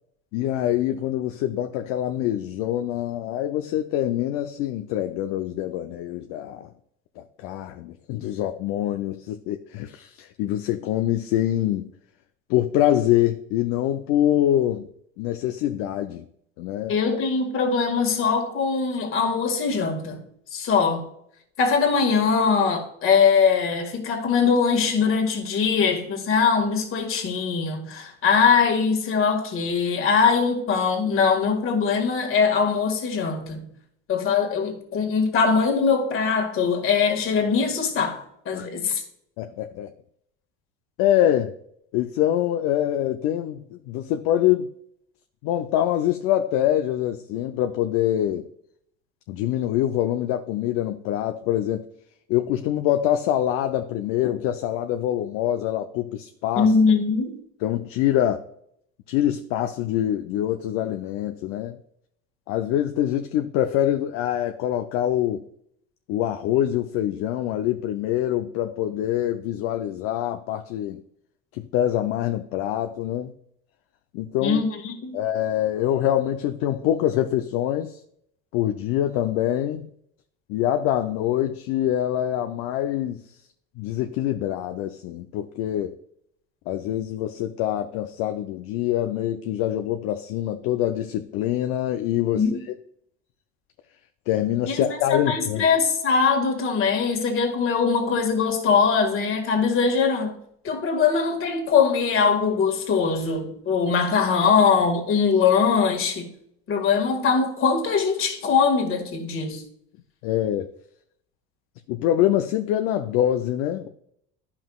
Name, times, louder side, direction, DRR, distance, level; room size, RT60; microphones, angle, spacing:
voice 1, 0.3-6.7 7.2-11.9 12.5-14.9 15.2-16.3 16.6-16.9 38.5-38.7 39.4-39.9 41.0-41.5 41.9-44.7 45.4-48.5 49.3-51.8 52.3-56.7 57.6-58.5 59.1-61.8 62.5-65.4 66.1-71.0 71.5-73.3 74.1-74.6 75.1-78.0 78.5-79.9 80.5-83.3 83.8-85.9 86.7-92.7 94.3-95.7 110.2-110.7 111.9-113.9, left 12 dB, 70° left, 0.6 m, -25 dB
voice 2, 16.9-20.2 20.5-21.1 21.6-33.7 34.1-39.0 56.6-57.4 74.4-75.2 92.3-92.6 94.7-94.8 95.1-100.3 100.6-106.3 106.7-109.6, left 5 dB, 45° left, 1.8 m, -22 dB
10.5 x 5.7 x 2.3 m
supercardioid pair, 95°, 29 cm